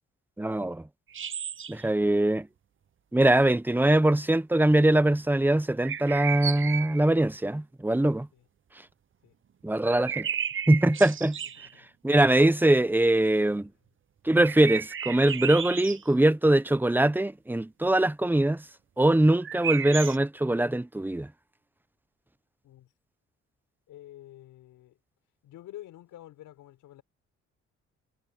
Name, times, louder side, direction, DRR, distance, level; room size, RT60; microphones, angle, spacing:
voice 1, 0.4-0.8 1.7-2.5 3.1-8.3 9.6-10.3 10.7-11.4 12.0-13.7 14.2-18.6 19.0-21.3, right 1 dB, 5° right, 0.9 m, -22 dB
sound 1, 1.1-1.9 5.8-7.1 9.8-11.7 14.4-16.0 19.4-20.2, right 8 dB, 40° right, 1.0 m, -33 dB
voice 2, 11.6-11.9 22.6-22.9 23.9-25.0 25.4-27.0, left 13 dB, 85° left, 5.2 m, -48 dB
cardioid pair, 90°, 30 cm